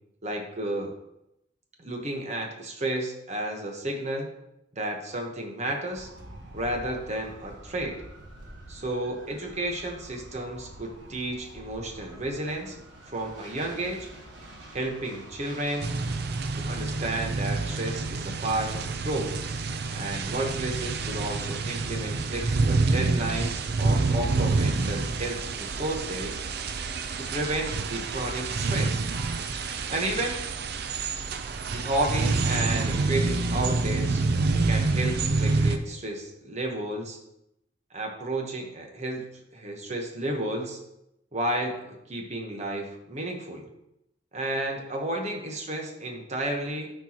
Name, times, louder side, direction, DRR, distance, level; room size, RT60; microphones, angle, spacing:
voice 1, 0.2-0.9 1.8-4.3 4.7-6.1 6.5-8.0 8.7-12.8 13.1-14.1 14.7-15.9 16.5-19.3 19.9-26.4 27.2-29.0 29.9-30.4 31.7-34.2 34.5-37.2 37.9-39.2 39.5-40.8 41.3-43.6 44.3-46.9, right 1 dB, 40° right, 2 dB, 1.1 m, -32 dB
sound 1, 5.9-16.7, right 1 dB, 90° right, 1.3 m, -47 dB
sound 2, 15.8-35.8, right 3 dB, 60° right, 0.5 m, -27 dB
12.5 x 4.6 x 3.0 m, 0.85 s
head